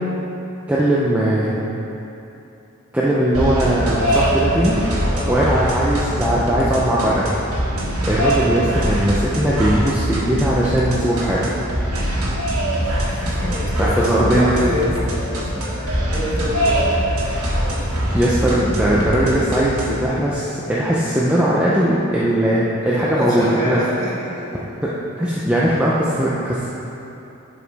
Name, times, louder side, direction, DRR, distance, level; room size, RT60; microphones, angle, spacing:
voice 1, 0.7-1.6 2.9-4.8 5.3-7.3 8.0-11.6 13.8-14.6 15.6-15.7 18.1-23.8 24.8-26.7, right 1 dB, 5° right, -8 dB, 0.5 m, -19 dB
sound 1, 3.3-20.0, equal, 75° right, 1.6 m, -22 dB
voice 2, 12.2-12.7 13.1-17.3 17.8-18.0 22.8-24.5 24.8-24.9, left 1 dB, 15° left, -9 dB, 1.7 m, -28 dB
11.0 x 5.0 x 3.4 m, 2.9 s
head